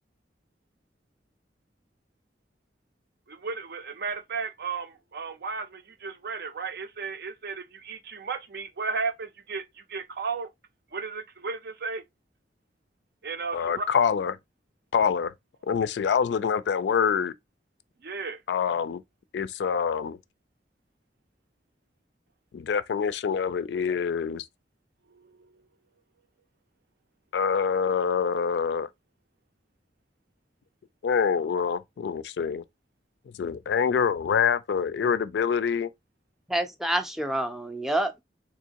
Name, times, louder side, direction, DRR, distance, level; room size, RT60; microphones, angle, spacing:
voice 1, 3.3-10.5 10.9-12.0 13.2-13.8 18.0-18.4 25.1-25.5, right 4 dB, 65° right, 0.5 m, -34 dB
voice 2, 13.5-14.4 14.9-15.3 15.7-17.3 18.5-19.0 19.3-20.2 22.5-24.5 27.3-28.9 31.0-32.6 33.3-35.9, left 6 dB, 70° left, 0.3 m, -25 dB
voice 3, 36.5-38.2, right 1 dB, ahead, 0.4 m, -28 dB
3.5 x 2.8 x 2.8 m
head